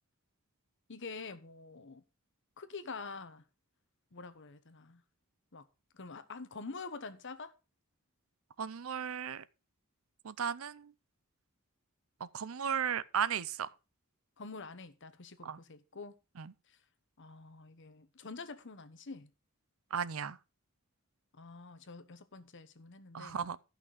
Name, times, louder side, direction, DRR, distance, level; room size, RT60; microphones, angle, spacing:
voice 1, 0.9-2.0 2.6-3.4 4.1-5.0 5.5-5.7 5.9-7.5 14.4-16.1 17.2-19.3 21.4-23.4, left 4 dB, 55° left, 1.1 m, -46 dB
voice 2, 8.6-9.4 10.2-10.9 12.2-13.7 15.4-15.6 16.4-16.5 19.9-20.4 23.1-23.6, right 7 dB, 70° right, 0.6 m, -35 dB
13.0 x 6.0 x 4.9 m
head